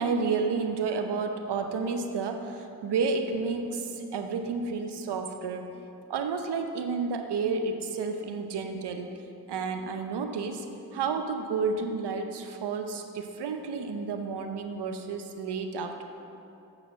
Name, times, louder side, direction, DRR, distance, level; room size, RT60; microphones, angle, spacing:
voice 1, 0.0-5.8 6.1-9.2 9.5-10.7 10.9-16.0, right 4 dB, 80° right, 6 dB, 0.8 m, -31 dB
7.8 x 4.9 x 7.0 m, 2.7 s
cardioid pair, 45°, 40 cm